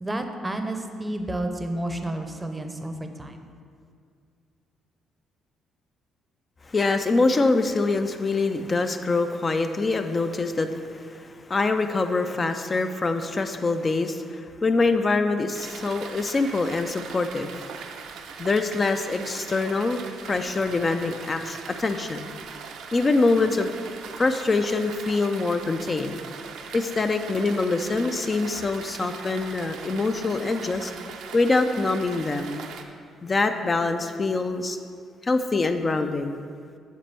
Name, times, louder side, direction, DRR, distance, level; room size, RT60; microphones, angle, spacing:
voice 1, 0.0-3.4, right 1 dB, 15° right, 6 dB, 0.6 m, -31 dB
voice 2, 6.7-17.6 18.4-22.3 22.9-23.7 24.2-26.2 26.7-30.9 31.3-32.6 33.2-34.8 35.2-36.4, left 3 dB, 30° left, 7 dB, 0.4 m, -24 dB
sound 1, 15.5-32.8, right 6 dB, 80° right, 0.6 m, -40 dB
7.5 x 4.2 x 6.8 m, 2.2 s
cardioid pair, 115°, 0 cm